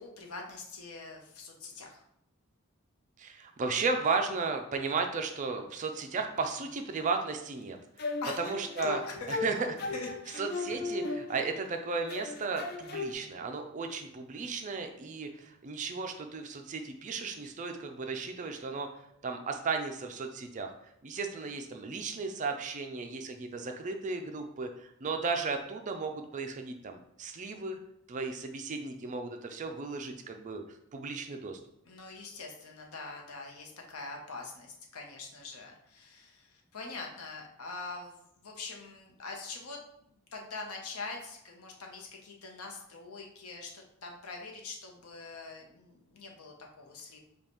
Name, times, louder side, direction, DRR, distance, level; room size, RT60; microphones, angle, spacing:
voice 1, 0.0-2.0 8.2-8.4 8.8-9.3 9.9-10.5 21.1-21.5 31.8-39.8 40.3-47.2, left 3 dB, 85° left, 1 dB, 0.8 m, -43 dB
voice 2, 3.2-9.0 9.3-9.7 10.4-18.9 19.2-20.7 21.0-27.8 28.1-30.6 30.9-31.6, right 4 dB, 35° right, 5 dB, 0.4 m, -35 dB
sound 1, 8.0-11.7 12.1-13.1, left 3 dB, 45° left, 0.4 m, -37 dB
5.1 x 2.3 x 3.0 m, 0.77 s
head